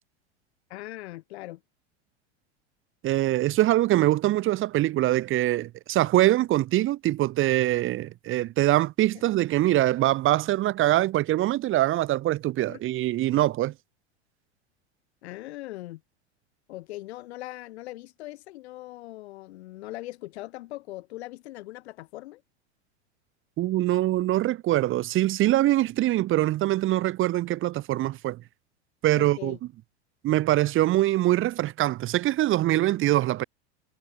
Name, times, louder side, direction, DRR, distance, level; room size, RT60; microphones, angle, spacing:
voice 1, 0.7-1.6 12.7-12.8 15.2-16.0 16.7-22.4 29.1-29.6, left 17 dB, 70° left, 7.9 m, -40 dB
voice 2, 3.0-13.7 23.6-28.4 29.0-29.6 30.2-33.4, right 15 dB, 35° right, 1.2 m, -23 dB
hypercardioid pair, 105°, 34 cm